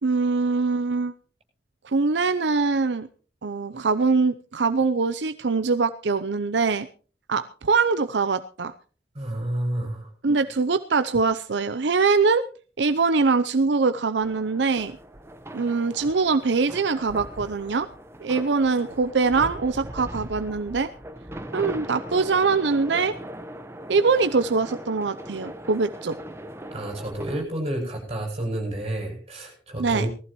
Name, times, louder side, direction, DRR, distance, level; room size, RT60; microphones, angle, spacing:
voice 1, 0.0-1.1 1.8-3.1 3.4-6.9 7.3-8.7 10.2-12.4 12.8-15.0 15.5-17.9 18.2-20.9 21.5-23.1 23.9-26.2 29.8-30.1, right 4 dB, 80° right, 11 dB, 0.7 m, -23 dB
voice 2, 9.1-10.1 26.7-30.1, right 1 dB, 35° right, 1 dB, 7.8 m, -30 dB
sound 1, 14.2-27.4, right 1 dB, 15° right, 1.1 m, -39 dB
19.5 x 14.5 x 3.1 m, 0.39 s
head